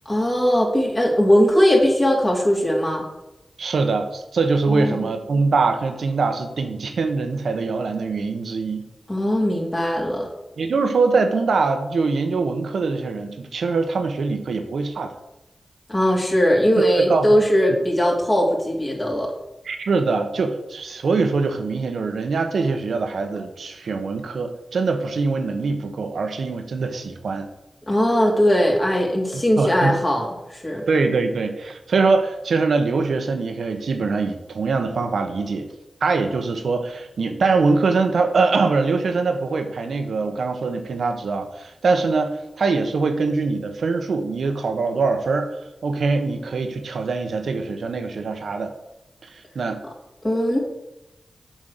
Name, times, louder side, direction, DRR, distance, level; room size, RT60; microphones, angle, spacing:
voice 1, 0.0-3.0 4.7-5.1 9.1-10.3 15.9-19.3 27.9-30.8 50.2-50.6, equal, 30° left, -1 dB, 3.3 m, -19 dB
voice 2, 3.6-8.9 10.6-15.1 17.1-17.4 19.6-27.5 29.3-29.9 30.9-35.7 36.0-48.7 49.3-49.8, right 4 dB, 85° right, 7 dB, 1.1 m, -23 dB
7.5 x 5.3 x 6.7 m, 0.93 s
cardioid pair, 45°, 0 cm